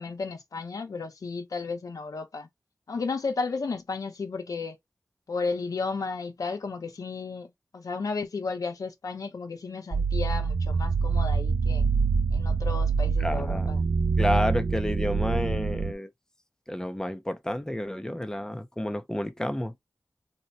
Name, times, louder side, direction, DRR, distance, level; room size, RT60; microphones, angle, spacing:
voice 1, 0.0-2.5 2.9-4.8 5.3-7.5 7.7-11.9 12.3-13.9, left 4 dB, 80° left, 0.7 m, -33 dB
sound 1, 9.9-15.9, right 5 dB, 45° right, 0.4 m, -25 dB
voice 2, 13.2-13.7 14.2-16.1 16.7-19.7, left 1 dB, 10° left, 0.6 m, -30 dB
2.8 x 2.2 x 4.0 m
wide cardioid pair, 65°, 6 cm